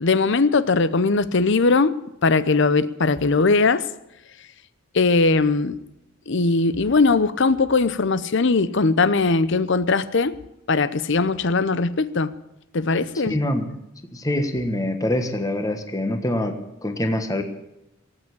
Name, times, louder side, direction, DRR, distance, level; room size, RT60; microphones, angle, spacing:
voice 1, 0.0-1.9 2.2-3.9 4.9-5.8 6.3-10.4 10.7-12.3 12.7-13.4, left 3 dB, 55° left, 0.7 m, -20 dB
voice 2, 13.3-13.7 14.1-17.4, left 1 dB, 15° left, 1.4 m, -25 dB
18.5 x 8.9 x 8.4 m
head